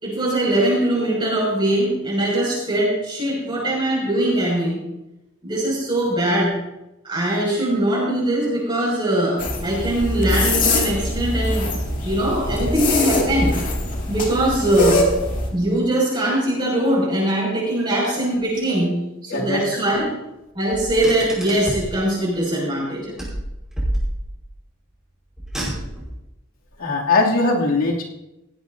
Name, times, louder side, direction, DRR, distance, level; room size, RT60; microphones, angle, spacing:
voice 1, 0.0-4.8 5.4-6.5 7.0-11.7 12.0-13.5 14.1-15.0 15.5-18.9 19.2-20.1 20.5-23.1, right 1 dB, 20° right, -6 dB, 6.3 m, -21 dB
sound 1, 9.4-15.5, left 1 dB, 40° left, 2.4 m, -23 dB
voice 2, 19.3-19.6 26.8-28.0, left 3 dB, 80° left, -3 dB, 2.8 m, -20 dB
Car, 20.7-22.0 23.2-24.5 25.4-26.2, right 1 dB, 5° right, 4.8 m, -28 dB
17.5 x 15.5 x 2.8 m, 0.94 s
head